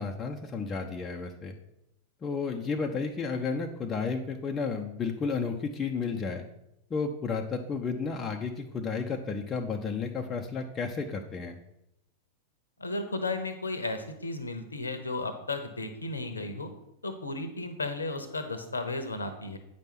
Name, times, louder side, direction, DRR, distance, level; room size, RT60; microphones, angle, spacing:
voice 1, 0.0-1.5 2.2-6.4 6.9-11.6, left 5 dB, 20° left, 2 dB, 0.7 m, -32 dB
voice 2, 12.8-16.7 17.0-19.6, left 2 dB, 75° left, 9 dB, 1.1 m, -34 dB
9.1 x 5.3 x 5.9 m, 0.84 s
figure-of-eight pair, 90°, 0 cm